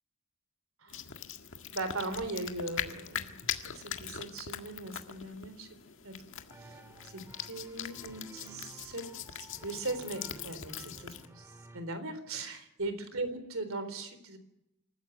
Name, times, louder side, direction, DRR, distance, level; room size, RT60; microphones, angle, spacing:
sound 1, 0.9-11.3, left 9 dB, 60° left, 1.8 m, -42 dB
voice 1, 1.7-3.4 3.7-5.7 6.0-6.1 6.6-6.8 7.0-9.0 9.3-14.4, right 2 dB, 65° right, 11 dB, 3.9 m, -39 dB
sound 2, 6.5-11.8, right 1 dB, 10° right, 2.1 m, -53 dB
27.0 x 15.0 x 9.3 m, 0.85 s
head